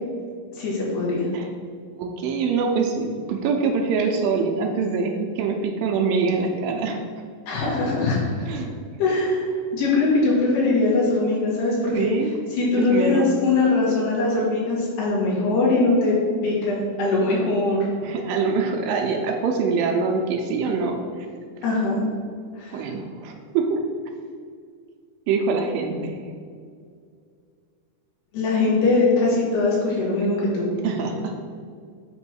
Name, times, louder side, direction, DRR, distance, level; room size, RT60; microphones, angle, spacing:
voice 1, 0.6-1.3 7.5-8.5 9.0-12.1 12.5-16.1 16.4-17.8 21.6-22.0 22.6-22.9 28.3-30.7, left 3 dB, 90° left, -5 dB, 4.1 m, -21 dB
voice 2, 2.0-7.0 8.5-8.7 11.9-12.3 12.8-13.3 18.0-21.3 22.7-23.8 25.3-26.2 30.8-31.3, right 4 dB, 80° right, 2 dB, 2.2 m, -24 dB
8.3 x 3.1 x 6.2 m, 2.2 s
omnidirectional pair, 4.4 m